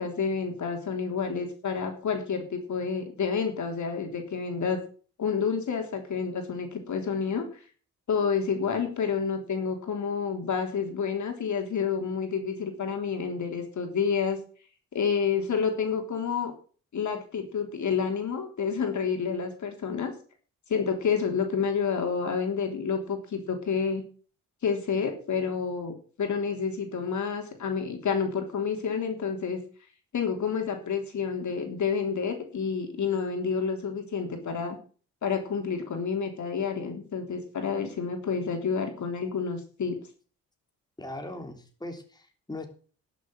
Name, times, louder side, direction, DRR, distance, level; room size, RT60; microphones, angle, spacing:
voice 1, 0.0-4.8 5.2-7.4 8.1-14.4 14.9-16.5 16.9-20.1 20.7-24.0 24.6-29.6 30.1-34.8 35.2-40.0, left 6 dB, 55° left, 4 dB, 3.5 m, -29 dB
voice 2, 41.0-42.7, left 2 dB, 10° left, 4 dB, 3.3 m, -39 dB
11.5 x 7.3 x 7.7 m, 0.40 s
supercardioid pair, 65°, 34 cm